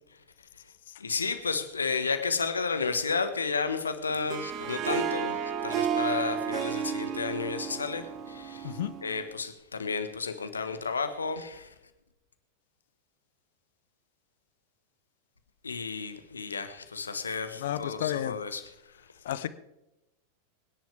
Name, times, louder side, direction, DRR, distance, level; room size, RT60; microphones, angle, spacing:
voice 1, 1.0-8.7 9.0-11.7 15.6-18.6, left 4 dB, 75° left, 1.5 m, -32 dB
Harp, 4.1-9.3, right 7 dB, 35° right, 1.2 m, -32 dB
voice 2, 17.6-18.4 19.2-19.5, left 11 dB, 55° left, 0.8 m, -32 dB
24.0 x 10.5 x 3.5 m
figure-of-eight pair, 90°, 0 cm